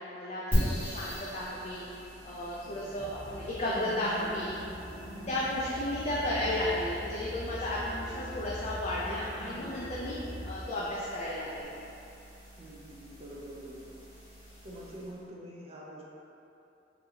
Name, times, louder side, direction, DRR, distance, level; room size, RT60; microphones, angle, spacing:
voice 1, 0.0-4.6 5.3-11.7, left 1 dB, 35° left, -7 dB, 0.4 m, -34 dB
sound 1, 0.5-15.2, equal, 10° right, 1.5 m, -40 dB
voice 2, 2.6-3.0 12.6-14.0 14.6-16.0, right 1 dB, 35° right, -4 dB, 0.5 m, -46 dB
sound 2, 3.0-10.5, left 1 dB, 55° right, 1.0 m, -42 dB
3.9 x 2.8 x 2.7 m, 2.8 s
head